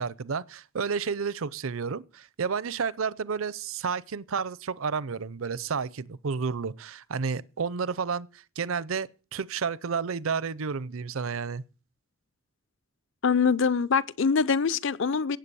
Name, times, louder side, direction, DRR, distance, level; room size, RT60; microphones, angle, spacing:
voice 1, 0.0-11.6, right 5 dB, 70° right, 0.6 m, -31 dB
voice 2, 13.2-15.4, left 5 dB, 60° left, 0.6 m, -24 dB
17.0 x 8.0 x 6.9 m
head